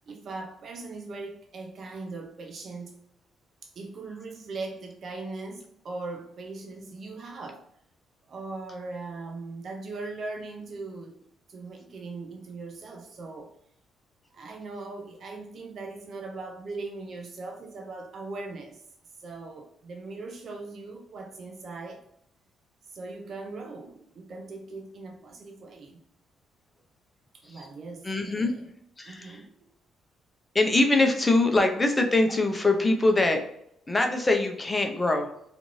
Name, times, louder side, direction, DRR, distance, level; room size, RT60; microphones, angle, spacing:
voice 1, 0.1-2.9 3.6-7.7 8.3-11.2 11.5-13.5 14.3-18.8 19.2-22.0 22.8-26.0 27.3-28.7 29.0-29.7, right 3 dB, 55° right, 1 dB, 0.5 m, -40 dB
voice 2, 28.0-28.5 29.0-29.4 30.5-33.4 33.9-35.3, left 2 dB, 20° left, 4 dB, 0.6 m, -23 dB
2.6 x 2.5 x 3.0 m, 0.73 s
cardioid pair, 90°, 0 cm